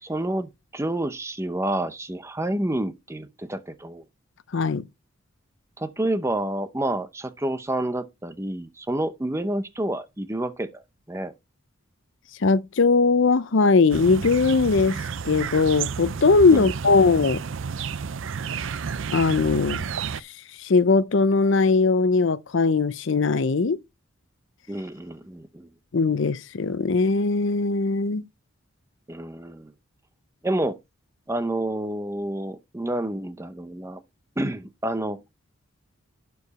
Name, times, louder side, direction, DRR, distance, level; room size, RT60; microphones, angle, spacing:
voice 1, 0.0-4.0 5.8-11.3 16.5-16.7 24.7-25.7 29.1-29.7 30.4-30.8 31.3-34.0 34.4-35.2, right 1 dB, 15° right, 0.6 m, -29 dB
voice 2, 4.5-4.8 12.4-17.4 19.1-19.9 20.2-20.3 20.6-23.8 25.9-28.2, left 4 dB, 60° left, 0.6 m, -20 dB
sound 1, 13.9-20.2, right 6 dB, 60° right, 0.5 m, -31 dB
11.5 x 4.8 x 4.1 m
head